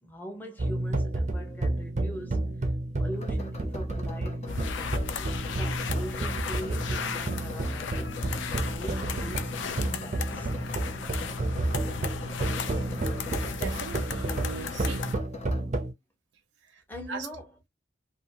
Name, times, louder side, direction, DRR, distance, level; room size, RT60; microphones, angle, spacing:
voice 1, 0.0-2.7 3.0-5.3 5.6-8.2 8.6-10.5 16.9-17.7, equal, 10° left, 0.9 m, -42 dB
sound 1, 0.6-15.9, right 2 dB, 40° right, 0.6 m, -31 dB
sound 2, 3.1-15.6, left 3 dB, 35° left, 0.8 m, -44 dB
sound 3, 4.5-15.1, left 6 dB, 70° left, 0.5 m, -36 dB
voice 2, 13.5-15.0 16.6-17.3, right 5 dB, 85° right, 0.4 m, -40 dB
2.8 x 2.7 x 2.7 m
head